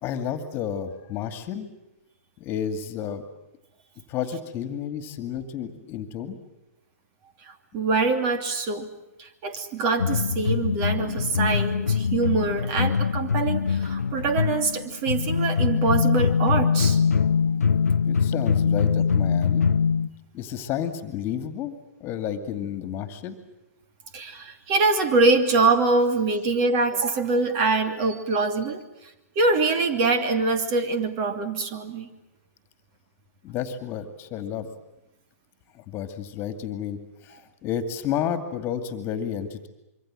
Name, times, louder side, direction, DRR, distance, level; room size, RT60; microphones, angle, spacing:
voice 1, 0.0-1.7 2.4-3.2 4.1-6.4 18.1-19.7 20.3-23.4 33.4-34.7 35.7-39.7, left 8 dB, 25° left, 9 dB, 2.4 m, -31 dB
voice 2, 7.4-8.9 9.2-17.0 24.1-28.8 29.4-32.1, right 3 dB, 35° right, 9 dB, 2.8 m, -24 dB
sound 1, 10.0-20.1, left 6 dB, 80° left, 0.8 m, -23 dB
26.0 x 24.0 x 7.7 m, 0.94 s
hypercardioid pair, 125°, 8 cm